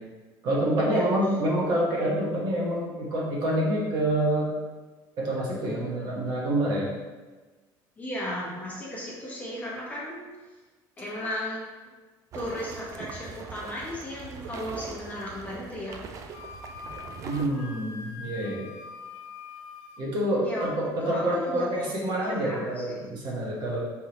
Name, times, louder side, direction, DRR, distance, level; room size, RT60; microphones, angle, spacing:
voice 1, 0.4-4.5 5.2-6.9 17.2-18.6 20.0-23.8, right 1 dB, 55° right, -4 dB, 1.3 m, -27 dB
voice 2, 8.0-10.2 11.0-11.6 12.3-16.0 20.4-20.6 21.0-21.9 22.3-23.0, left 1 dB, 20° left, -5 dB, 1.1 m, -35 dB
sound 1, 12.3-17.5, right 5 dB, 40° right, 0.3 m, -42 dB
Wind instrument woodwind instrument, 16.3-20.1, left 6 dB, 70° left, 0.4 m, -43 dB
4.6 x 3.5 x 3.0 m, 1.3 s
cardioid pair, 145°, 9 cm